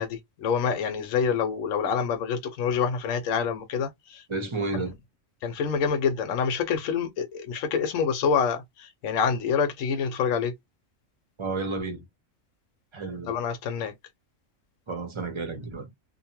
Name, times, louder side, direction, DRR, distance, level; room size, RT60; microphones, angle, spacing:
voice 1, 0.0-4.2 5.4-10.5 13.3-13.9, left 6 dB, 75° left, 1.0 m, -27 dB
voice 2, 4.3-5.0 11.4-12.1 12.9-13.3 14.9-15.9, right 3 dB, 30° right, 0.6 m, -31 dB
2.6 x 2.2 x 2.8 m
omnidirectional pair, 1.4 m